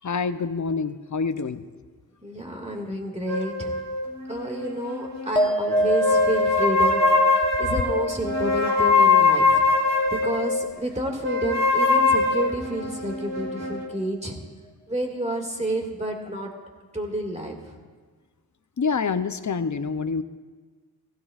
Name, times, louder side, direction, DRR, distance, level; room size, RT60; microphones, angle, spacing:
voice 1, 0.0-1.6 18.8-20.2, left 5 dB, 50° left, 11 dB, 0.6 m, -26 dB
voice 2, 2.2-3.8 4.3-9.7 10.1-14.4 14.9-16.5 16.9-17.8, right 1 dB, 15° right, 2 dB, 1.9 m, -30 dB
sound 1, 3.3-5.3 5.7-10.5 11.2-13.8, left 3 dB, 55° right, 2.2 m, -22 dB
sound 2, 5.4-12.0 12.3-13.0, equal, 10° left, 0.9 m, -29 dB
17.0 x 15.5 x 2.4 m, 1.4 s
wide cardioid pair, 40°, 38 cm